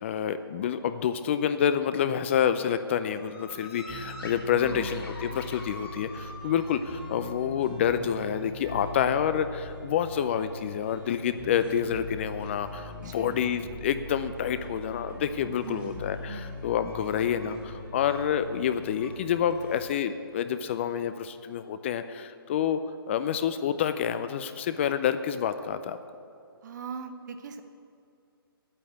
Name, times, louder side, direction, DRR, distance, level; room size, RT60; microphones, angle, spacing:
voice 1, 0.0-22.8 23.1-26.0, left 8 dB, 30° left, 11 dB, 0.4 m, -28 dB
sound 1, 2.8-20.3, left 1 dB, 80° left, 3.4 m, -48 dB
sound 2, 3.5-19.9, left 1 dB, 10° right, 1.9 m, -42 dB
voice 2, 4.5-5.1 13.0-13.5 15.6-16.7 26.6-27.6, right 6 dB, 50° right, 7 dB, 1.1 m, -41 dB
8.9 x 8.3 x 9.3 m, 2.5 s
hypercardioid pair, 150°, 13 cm